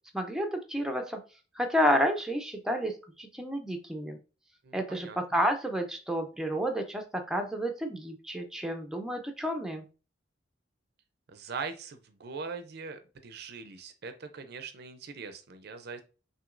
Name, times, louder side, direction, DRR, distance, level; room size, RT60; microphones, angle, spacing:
voice 1, 0.1-1.2 1.6-4.2 4.7-9.9, equal, 5° right, 4 dB, 0.5 m, -30 dB
voice 2, 4.6-5.2 11.3-16.0, right 5 dB, 55° right, 8 dB, 0.5 m, -41 dB
5.9 x 2.8 x 2.5 m, 0.34 s
head